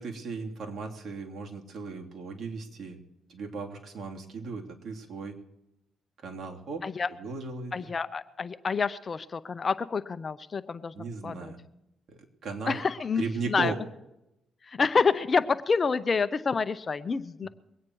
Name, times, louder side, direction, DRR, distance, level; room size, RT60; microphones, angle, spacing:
voice 1, 0.0-3.0 3.3-5.4 6.2-6.8 7.2-7.7 10.9-11.6 12.4-12.8 13.2-13.8 17.4-17.5, right 4 dB, 55° right, 1 dB, 2.9 m, -36 dB
voice 2, 7.7-10.9 11.2-11.5 12.7-13.7 14.6-17.5, left 5 dB, 35° left, 13 dB, 0.7 m, -28 dB
23.0 x 9.3 x 4.6 m, 0.88 s
cardioid pair, 90°, 0 cm